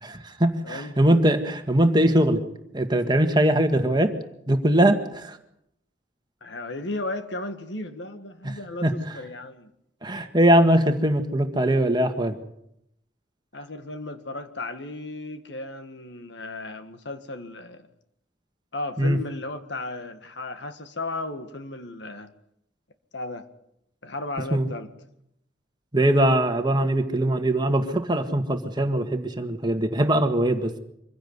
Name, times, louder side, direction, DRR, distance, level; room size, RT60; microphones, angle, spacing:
voice 1, 0.0-2.4 2.7-4.1 4.5-5.4 8.4-8.9 10.0-12.4 19.0-19.2 24.5-24.7 25.9-30.8, right 1 dB, 20° right, 1.7 m, -21 dB
voice 2, 0.6-0.9 6.4-9.7 13.5-17.9 18.7-22.3 23.1-23.5 24.0-24.9, left 2 dB, 65° left, 1.7 m, -35 dB
24.5 x 16.0 x 8.2 m
head